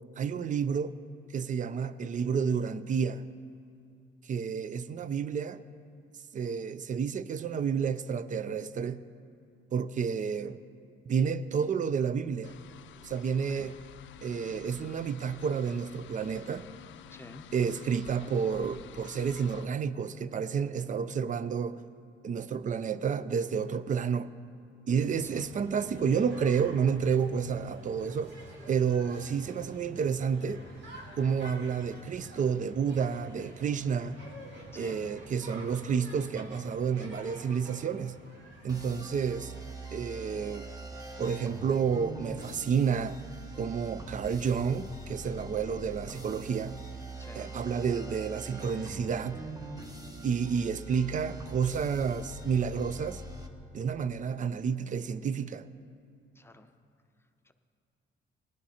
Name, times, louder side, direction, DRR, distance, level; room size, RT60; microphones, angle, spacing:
voice 1, 0.2-1.0 1.3-3.3 4.3-5.6 6.3-9.0 9.7-10.6 11.1-12.5 13.0-13.8 14.2-16.7 17.5-21.8 22.2-24.3 24.9-28.4 28.7-30.6 31.2-34.2 34.8-38.2 38.6-39.5 39.9-40.7 41.2-43.2 43.6-46.8 47.3-49.4 50.2-53.2 53.7-55.7, right 6 dB, 40° right, 0.5 m, -30 dB
sound 1, 12.4-19.7, left 10 dB, 70° left, 0.5 m, -50 dB
voice 2, 17.1-17.4 25.3-25.5 34.7-35.0 47.2-47.5 56.4-56.7, left 2 dB, 10° left, 0.7 m, -49 dB
sound 2, 24.9-39.8, equal, 70° right, 2.4 m, -49 dB
sound 3, 38.7-53.5, right 2 dB, 20° right, 1.2 m, -43 dB
18.0 x 10.5 x 4.3 m
cardioid pair, 90°, 20 cm